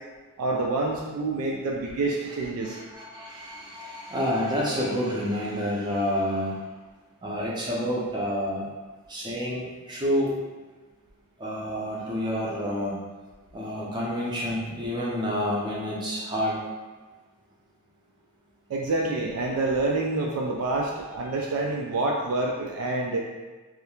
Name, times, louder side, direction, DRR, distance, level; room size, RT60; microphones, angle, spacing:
voice 1, 0.4-2.8 18.7-23.3, right 2 dB, 85° right, -1 dB, 0.3 m, -27 dB
voice 2, 2.6-6.6 7.2-8.7 9.1-10.4 11.4-13.0 13.5-16.6, equal, 20° right, -5 dB, 0.5 m, -29 dB
2.3 x 2.0 x 2.9 m, 1.3 s
head